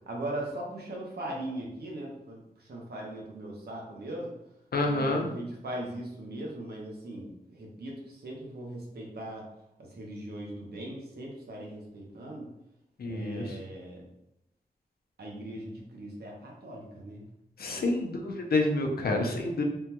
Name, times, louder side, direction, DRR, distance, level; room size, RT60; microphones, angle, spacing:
voice 1, 0.1-4.3 4.8-9.5 9.8-12.5 13.1-14.0 15.2-17.2 17.7-17.9 18.8-19.3, right 1 dB, 80° right, -2 dB, 0.8 m, -39 dB
voice 2, 4.7-5.3 13.0-13.5 17.6-19.6, left 2 dB, 70° left, 2 dB, 0.5 m, -28 dB
3.5 x 2.2 x 2.9 m, 0.83 s
wide cardioid pair, 125°, 16 cm